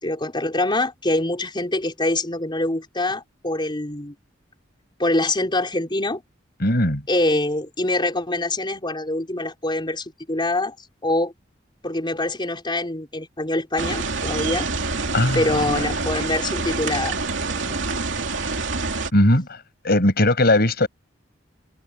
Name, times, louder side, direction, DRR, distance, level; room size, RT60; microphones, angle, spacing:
voice 1, 0.0-4.1 5.0-6.2 7.1-10.7 11.0-11.3 11.8-14.7 15.3-17.2 17.7-17.8, left 2 dB, 25° left, 4.4 m, -24 dB
voice 2, 6.6-7.0 15.1-15.8 19.1-19.6 19.8-20.9, left 1 dB, 55° left, 5.9 m, -19 dB
sound 1, 13.8-19.1, right 3 dB, 80° right, 2.7 m, -26 dB
head